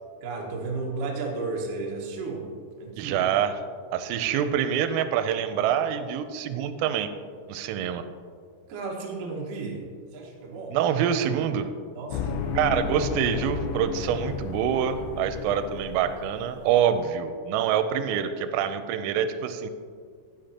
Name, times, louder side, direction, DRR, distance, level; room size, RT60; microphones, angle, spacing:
voice 1, 0.2-2.5 2.8-3.2 8.7-10.8 11.9-12.4, right 3 dB, 65° right, -2 dB, 2.1 m, -33 dB
voice 2, 3.0-3.6 3.9-7.1 7.5-8.0 10.7-11.7 12.5-19.7, right 9 dB, 85° right, 9 dB, 3.2 m, -26 dB
sound 1, 12.1-16.9, left 5 dB, 85° left, 3.2 m, -33 dB
15.5 x 8.2 x 2.8 m, 2.1 s
omnidirectional pair, 5.8 m